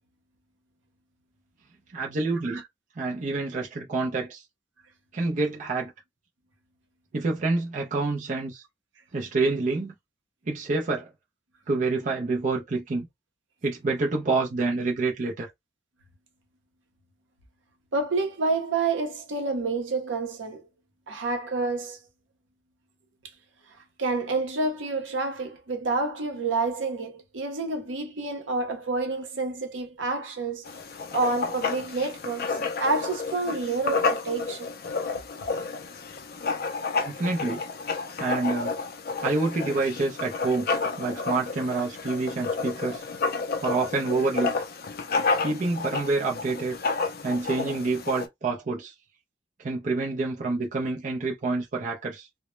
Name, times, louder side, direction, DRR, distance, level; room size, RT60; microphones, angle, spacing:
voice 1, 1.9-2.6 3.0-4.4 5.1-5.9 7.1-8.6 9.1-9.9 10.5-11.1 11.7-13.1 13.6-15.5 37.0-37.6 38.2-38.8 39.2-40.7 41.0-43.0 43.6-44.5 45.4-46.8 47.2-48.9 49.6-52.3, right 3 dB, 40° right, 0.4 m, -27 dB
voice 2, 17.9-20.7 21.1-22.0 24.0-30.7 31.1-34.7, right 3 dB, 75° right, 0.7 m, -28 dB
Writing, 30.6-48.3, left 4 dB, 50° left, 0.4 m, -30 dB
2.1 x 2.0 x 3.0 m
head